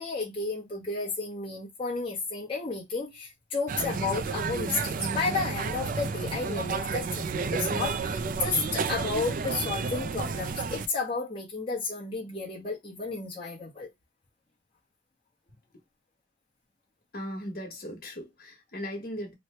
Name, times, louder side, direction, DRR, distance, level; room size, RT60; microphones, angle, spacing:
voice 1, 0.0-13.9, left 4 dB, 30° left, 0.9 m, -32 dB
sound 1, 3.7-10.9, right 5 dB, 50° right, 0.3 m, -31 dB
voice 2, 17.1-19.3, equal, 55° left, 1.2 m, -38 dB
3.1 x 2.1 x 4.1 m
head